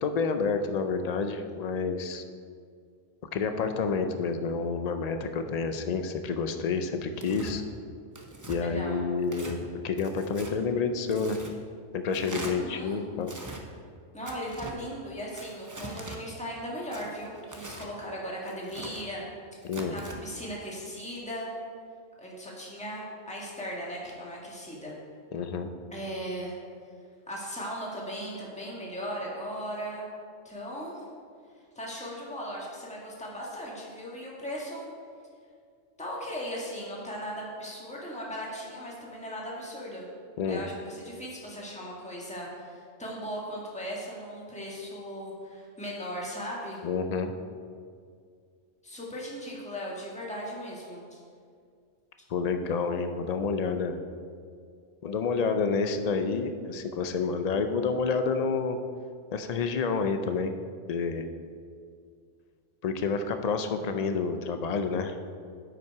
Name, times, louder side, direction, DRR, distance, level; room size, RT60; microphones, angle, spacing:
voice 1, 0.0-2.2 3.3-7.6 8.5-11.4 11.9-13.3 19.6-19.9 25.3-25.7 40.4-40.6 46.8-47.3 52.3-54.0 55.0-58.8 59.3-60.5 60.9-61.2 62.8-65.2, left 5 dB, 60° left, 7 dB, 0.4 m, -29 dB
Tearing, 7.2-7.5 8.1-8.6 9.2-9.6 10.0-10.5 11.1-11.5 12.1-12.5 13.2-13.6 14.2-14.8 15.3-16.2 16.9-17.9 18.5-19.0 19.6-20.2, right 2 dB, 20° right, 0.6 m, -42 dB
voice 2, 8.5-9.1 12.4-13.0 14.1-19.3 19.9-21.5 22.2-24.9 25.9-26.6 27.3-30.0 30.4-31.0 31.7-34.8 36.0-40.1 40.5-46.8 48.8-51.2, equal, 5° left, -4 dB, 1.5 m, -38 dB
9.4 x 5.8 x 4.6 m, 2.2 s
omnidirectional pair, 1.3 m